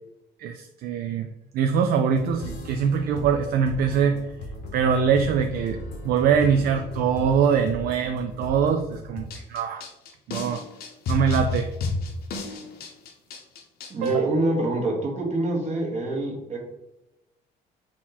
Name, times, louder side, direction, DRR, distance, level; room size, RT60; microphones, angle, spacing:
voice 1, 0.4-1.3 1.5-4.2 4.7-5.8 6.0-9.9 10.3-10.6 11.1-11.7 14.0-14.3, right 7 dB, 65° right, 7 dB, 0.4 m, -23 dB
sound 1, 2.1-9.2, left 2 dB, 90° left, 1.2 m, -37 dB
sound 2, 9.3-14.1, left 3 dB, 65° left, 0.9 m, -31 dB
voice 2, 13.9-16.6, right 2 dB, 40° right, -1 dB, 1.4 m, -25 dB
4.1 x 2.9 x 4.0 m, 0.93 s
cardioid pair, 110°, 17 cm